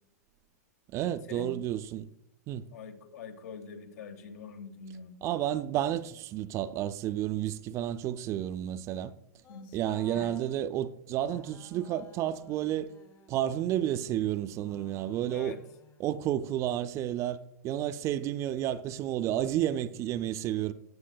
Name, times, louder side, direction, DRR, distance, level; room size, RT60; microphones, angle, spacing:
voice 1, 0.9-2.1 2.5-2.6 5.2-9.1 9.7-12.9 13.3-15.6 16.0-17.4 17.6-20.7, right 12 dB, 35° right, 0.4 m, -31 dB
voice 2, 2.7-5.3 9.5-9.7 10.1-10.4 15.3-15.6, left 5 dB, 70° left, 1.4 m, -44 dB
sound 1, 9.4-10.7 11.3-16.2, left 6 dB, 30° left, 1.3 m, -56 dB
17.5 x 6.3 x 2.2 m
hypercardioid pair, 115°, 9 cm